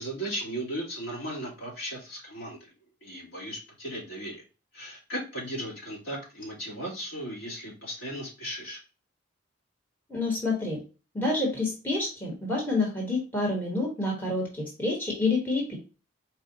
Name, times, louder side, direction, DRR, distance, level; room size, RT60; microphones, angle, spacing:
voice 1, 0.0-2.7 3.0-4.4 4.7-8.8, right 1 dB, 70° left, -4 dB, 2.2 m, -36 dB
voice 2, 10.1-10.8 11.1-15.8, left 2 dB, 10° left, -3 dB, 1.1 m, -28 dB
4.4 x 2.3 x 3.8 m, 0.33 s
head